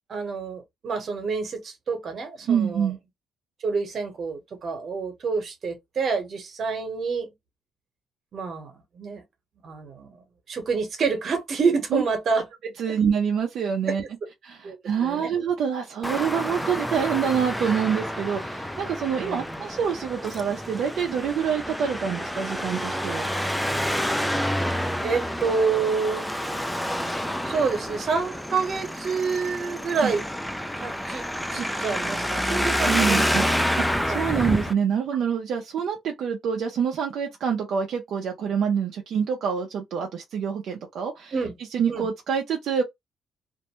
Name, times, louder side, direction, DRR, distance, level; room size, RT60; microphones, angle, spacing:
voice 1, 0.1-2.9 3.6-7.3 8.3-9.2 9.6-12.4 12.9-13.0 13.9-14.0 14.6-14.8 15.0-15.3 19.2-19.6 25.0-26.3 27.4-30.2 30.8-31.2 31.5-33.5 34.1-34.3 41.3-41.6 41.9-42.1, right 5 dB, 55° right, 1.0 m, -28 dB
voice 2, 2.5-3.0 11.9-12.0 12.8-14.0 14.4-23.3 30.0-30.1 31.6-31.7 32.9-33.5 34.1-41.3 41.7-42.8, right 7 dB, 70° right, 0.5 m, -26 dB
Traffic noise roadway noise, 16.0-34.7, equal, ahead, 0.4 m, -28 dB
2.6 x 2.1 x 2.9 m
cardioid pair, 90°, 0 cm